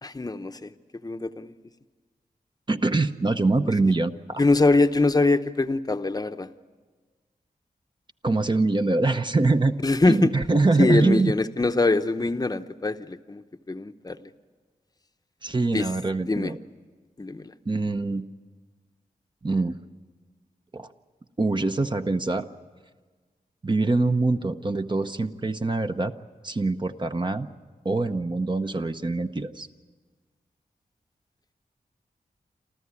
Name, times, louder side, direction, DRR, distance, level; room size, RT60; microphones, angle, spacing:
voice 1, 0.0-0.7 1.0-1.5 3.7-3.8 4.4-6.5 9.8-10.4 10.8-14.3 15.7-15.9 16.3-16.5 17.2-17.5, left 3 dB, 25° left, 9 dB, 0.8 m, -23 dB
voice 2, 2.7-4.4 8.2-9.8 10.1-11.3 15.4-16.6 17.7-18.2 19.4-19.8 20.7-20.9 21.4-22.5 23.6-26.1 26.4-27.5 27.8-29.7, right 3 dB, 30° right, 7 dB, 0.8 m, -24 dB
27.5 x 14.0 x 9.7 m, 1.4 s
wide cardioid pair, 80°, 15 cm